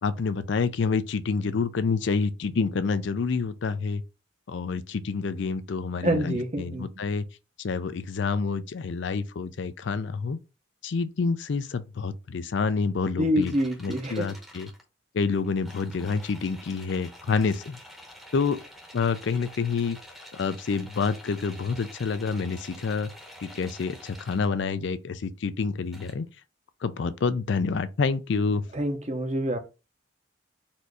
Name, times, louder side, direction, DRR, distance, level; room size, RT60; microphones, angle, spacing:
voice 1, 0.0-4.0 4.5-7.2 7.6-10.4 10.8-13.5 13.8-14.7 15.1-17.8 18.3-18.6 18.9-20.0 20.3-23.1 23.4-26.3 26.8-28.6, left 4 dB, 65° left, 0.4 m, -28 dB
voice 2, 6.0-6.9 13.2-14.3 28.7-29.6, equal, 35° right, 0.7 m, -27 dB
sound 1, 13.4-14.8 15.3-24.5 25.9-26.1, equal, ahead, 0.8 m, -48 dB
4.3 x 2.6 x 4.6 m
head